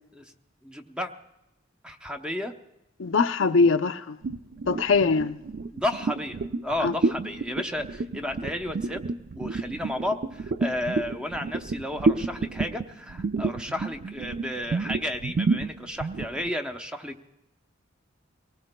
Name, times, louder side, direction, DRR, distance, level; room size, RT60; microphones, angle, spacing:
voice 1, 0.6-1.1 1.8-2.5 5.7-9.1 9.4-17.3, left 1 dB, 5° right, 0.7 m, -32 dB
voice 2, 3.0-4.2 4.7-5.4 6.8-6.9, left 4 dB, 75° left, 0.6 m, -22 dB
sound 1, 4.2-16.5, right 3 dB, 50° right, 0.4 m, -30 dB
24.5 x 18.5 x 2.2 m
head